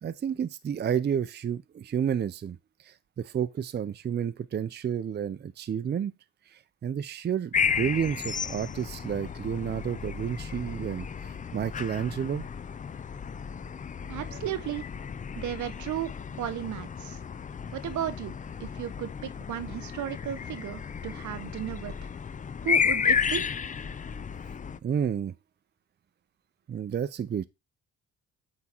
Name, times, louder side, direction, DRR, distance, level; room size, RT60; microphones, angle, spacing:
voice 1, 0.0-2.6 2.8-6.1 6.5-11.1 11.5-12.5 14.3-14.4 24.8-25.3 26.7-27.5, right 8 dB, 35° right, 0.5 m, -30 dB
sound 1, 7.5-24.8, left 6 dB, 25° left, 0.5 m, -33 dB
voice 2, 14.1-14.8 15.4-16.1 16.4-17.2 17.7-18.3 18.6-21.9 22.6-23.5, right 10 dB, 70° right, 0.9 m, -34 dB
8.3 x 3.7 x 4.4 m
cardioid pair, 90°, 30 cm